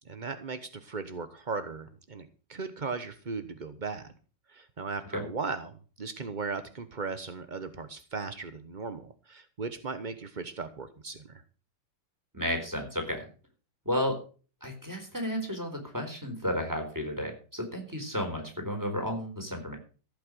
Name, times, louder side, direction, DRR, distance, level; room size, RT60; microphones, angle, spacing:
voice 1, 0.1-4.1 4.5-11.4, right 4 dB, 40° right, 10 dB, 0.6 m, -37 dB
voice 2, 12.3-13.2 13.9-14.2 14.6-19.8, equal, 10° right, 4 dB, 4.0 m, -32 dB
15.0 x 8.6 x 6.3 m, 0.38 s
omnidirectional pair, 2.4 m